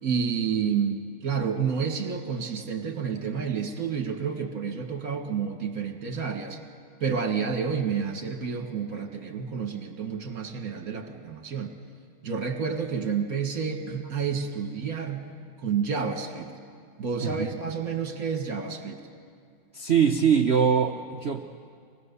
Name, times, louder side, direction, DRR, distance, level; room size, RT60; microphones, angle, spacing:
voice 1, 0.0-6.6 7.0-11.7 12.2-15.3 15.6-16.5 17.0-19.0, right 6 dB, 45° right, 4 dB, 2.0 m, -30 dB
voice 2, 19.7-21.4, right 7 dB, 80° right, 5 dB, 0.5 m, -22 dB
25.0 x 19.0 x 6.9 m, 2.1 s
omnidirectional pair, 2.3 m